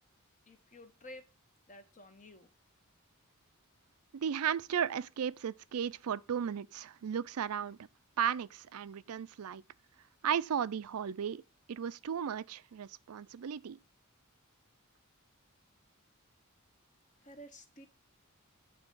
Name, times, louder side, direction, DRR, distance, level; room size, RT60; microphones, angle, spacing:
voice 1, 0.5-1.3 1.7-2.5 17.2-17.9, left 1 dB, 35° left, 1.1 m, -52 dB
voice 2, 4.1-7.8 8.2-9.6 10.2-11.4 11.7-13.8, right 8 dB, 85° right, 0.4 m, -35 dB
9.0 x 3.3 x 5.4 m
head